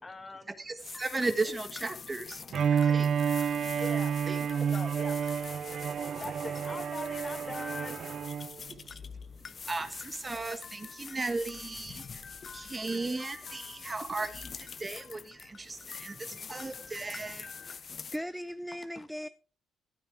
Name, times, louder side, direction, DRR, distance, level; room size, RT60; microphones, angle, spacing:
voice 1, 0.0-0.5 3.8-4.2 4.7-5.2 6.2-8.0 16.7-16.9 18.9-19.1, left 3 dB, 25° left, 1.5 m, -42 dB
voice 2, 0.6-2.4 2.7-3.1 4.3-4.5 8.6-17.5, right 3 dB, 25° right, 1.4 m, -36 dB
sound 1, 0.8-18.2, left 6 dB, 45° left, 0.8 m, -45 dB
Bowed string instrument, 2.5-8.6, right 7 dB, 60° right, 0.5 m, -30 dB
voice 3, 17.7-19.3, equal, ahead, 0.4 m, -39 dB
15.0 x 9.1 x 3.5 m
cardioid pair, 90°, 0 cm